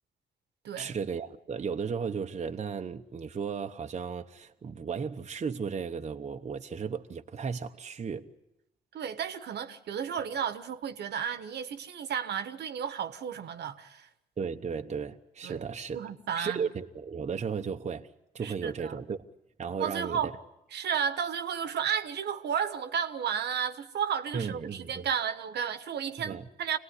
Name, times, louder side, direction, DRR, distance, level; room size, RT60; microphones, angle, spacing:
voice 1, 0.8-8.3 14.4-16.0 16.4-18.1 18.3-19.2 19.6-20.3 24.3-25.1 26.2-26.4, right 6 dB, 40° right, 1.0 m, -35 dB
voice 2, 8.9-14.1 15.4-15.6 15.9-16.6 18.4-19.0 19.8-20.3 20.7-26.8, right 8 dB, 75° right, 1.3 m, -33 dB
25.5 x 19.0 x 9.8 m
cardioid pair, 85°, 18 cm